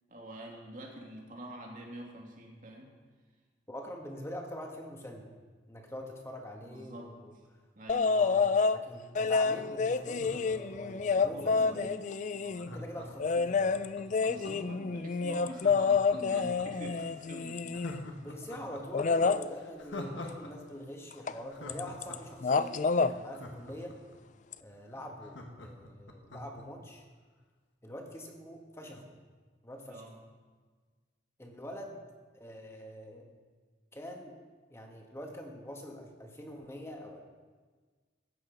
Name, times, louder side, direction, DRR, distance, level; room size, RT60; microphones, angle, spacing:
voice 1, 0.1-2.9 6.7-7.1 7.8-8.2 11.3-12.9 14.3-17.8 22.5-22.8 29.9-30.2, right 1 dB, 45° right, -1 dB, 2.5 m, -46 dB
voice 2, 3.7-5.3 5.7-7.3 8.1-11.9 12.7-13.9 17.7-17.8 18.2-24.0 24.6-27.0 27.8-29.1 29.6-30.1 31.4-32.0 32.3-33.3 33.9-34.4 34.7-37.2, equal, 15° left, 2 dB, 1.6 m, -44 dB
sound 1, 7.9-8.8 9.2-12.7 13.2-18.1 18.9-19.4 21.3-21.4 21.7-22.2 22.4-23.1 24.5-24.6, left 4 dB, 40° left, 0.3 m, -28 dB
Laughter, 10.0-11.7 12.6-14.8 15.5-16.9 17.3-17.4 17.7-20.5 20.8-20.9 21.2-24.2 24.6-24.7 24.9-26.6 27.0-27.1, left 1 dB, 75° left, 1.6 m, -45 dB
16.0 x 9.3 x 5.2 m, 1.5 s
head